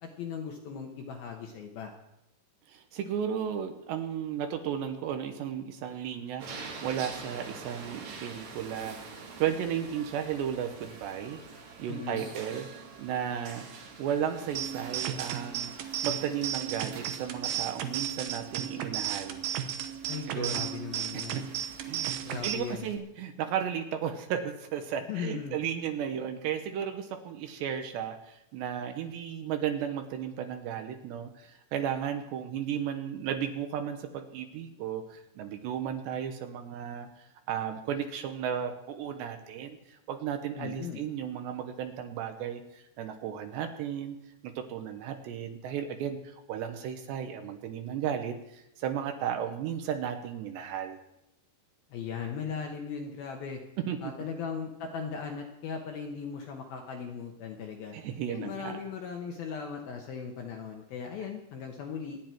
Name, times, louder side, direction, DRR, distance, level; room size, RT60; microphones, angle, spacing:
voice 1, 0.0-1.9 11.9-12.3 20.1-21.5 22.2-22.9 25.1-25.6 40.5-41.0 51.9-53.6 54.0-58.0 58.3-62.2, left 6 dB, 70° left, 3 dB, 2.4 m, -38 dB
voice 2, 2.7-9.1 9.4-11.4 11.8-13.7 14.0-19.4 20.3-20.6 21.1-21.4 21.8-22.1 22.4-44.2 44.4-51.0 53.9-54.1 57.9-58.8, right 9 dB, 75° right, 7 dB, 2.9 m, -34 dB
sound 1, 6.4-23.0, right 4 dB, 50° right, 2.8 m, -47 dB
sound 2, 14.5-22.5, right 10 dB, 90° right, 1.9 m, -34 dB
25.0 x 9.9 x 4.5 m, 0.86 s
omnidirectional pair, 5.5 m